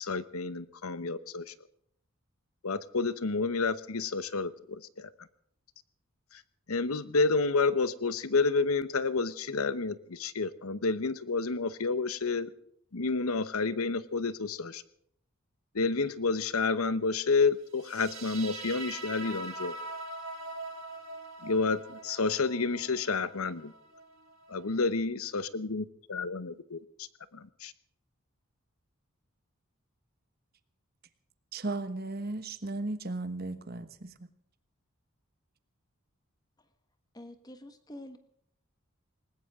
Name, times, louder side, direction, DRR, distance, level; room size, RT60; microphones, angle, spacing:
voice 1, 0.0-1.5 2.6-5.1 6.7-12.5 12.9-14.8 15.7-19.8 21.4-23.7 24.5-26.8 27.3-27.7, left 4 dB, 85° left, 15 dB, 1.0 m, -30 dB
sound 1, 17.8-24.8, right 2 dB, 70° right, 4.5 m, -43 dB
voice 2, 31.5-34.3, right 2 dB, 45° right, 11 dB, 1.3 m, -36 dB
voice 3, 37.1-38.2, left 1 dB, 20° left, 9 dB, 1.4 m, -46 dB
20.0 x 19.5 x 3.7 m, 0.68 s
head